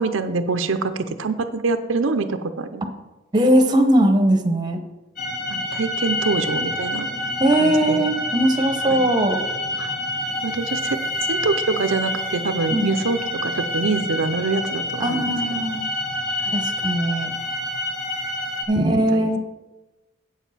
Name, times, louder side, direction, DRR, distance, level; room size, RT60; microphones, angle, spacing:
voice 1, 0.0-2.9 5.5-7.1 7.6-8.0 8.9-9.0 9.8-9.9 10.4-11.0 11.3-15.6 16.4-16.6 18.9-19.3, right 3 dB, 80° right, 8 dB, 0.6 m, -25 dB
voice 2, 3.3-4.8 7.4-9.4 12.7-12.9 15.0-15.9 16.5-17.3 18.7-19.4, right 1 dB, 20° right, 5 dB, 0.9 m, -19 dB
sound 1, 5.2-18.6, left 1 dB, 50° left, 1.7 m, -27 dB
8.1 x 7.2 x 5.7 m, 1.1 s
head